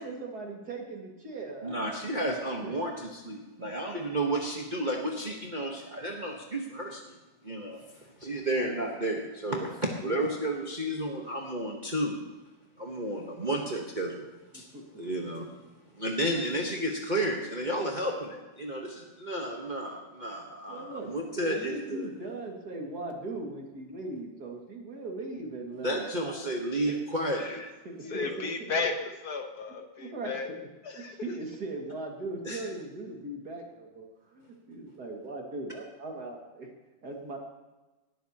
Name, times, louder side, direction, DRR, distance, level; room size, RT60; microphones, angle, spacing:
voice 1, 0.0-2.3 2.6-2.8 3.6-3.7 8.5-8.7 14.5-15.0 15.4-15.5 20.7-21.1 21.4-26.9 27.8-28.7 30.0-30.3 30.9-36.7 37.0-37.4, right 2 dB, 55° right, 0 dB, 2.7 m, -39 dB
voice 2, 1.6-7.2 7.4-12.2 12.8-14.3 14.5-14.7 15.0-15.5 15.9-22.1 25.8-27.6 28.0-28.4 32.4-32.6, right 1 dB, 30° right, -1 dB, 1.2 m, -32 dB
voice 3, 28.1-30.5 30.8-31.1, left 4 dB, 60° left, 5 dB, 1.5 m, -34 dB
18.5 x 12.5 x 2.9 m, 1.1 s
omnidirectional pair, 2.0 m